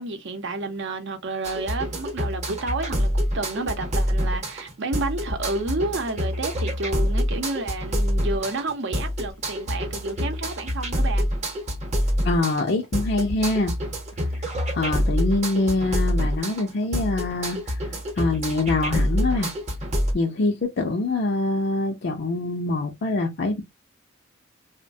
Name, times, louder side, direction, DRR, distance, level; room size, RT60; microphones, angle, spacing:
voice 1, 0.0-11.3, right 2 dB, 60° right, 0.7 m, -30 dB
sound 1, 1.4-20.1, equal, 35° right, 0.8 m, -26 dB
voice 2, 12.2-13.7 14.7-17.6 18.2-19.5 20.1-23.6, left 2 dB, 55° left, 0.5 m, -24 dB
3.0 x 2.1 x 2.6 m
head